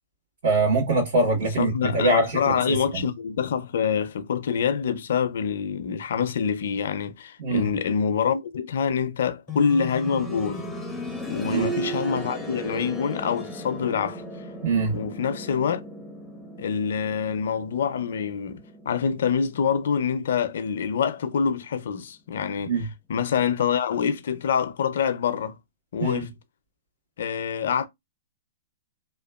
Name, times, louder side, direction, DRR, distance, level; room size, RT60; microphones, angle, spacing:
voice 1, 0.4-3.1 7.4-7.7 11.4-11.7 14.6-15.0 22.6-22.9 26.0-26.2, right 3 dB, 65° right, 1.5 m, -24 dB
voice 2, 1.6-10.7 11.3-14.2 14.9-15.8 16.6-22.7 23.1-25.6 25.9-26.3 27.2-27.9, left 7 dB, 70° left, 0.4 m, -26 dB
sound 1, 9.5-20.3 21.6-21.7, right 1 dB, ahead, 0.6 m, -36 dB
2.8 x 2.2 x 2.2 m
hypercardioid pair, 135°, 0 cm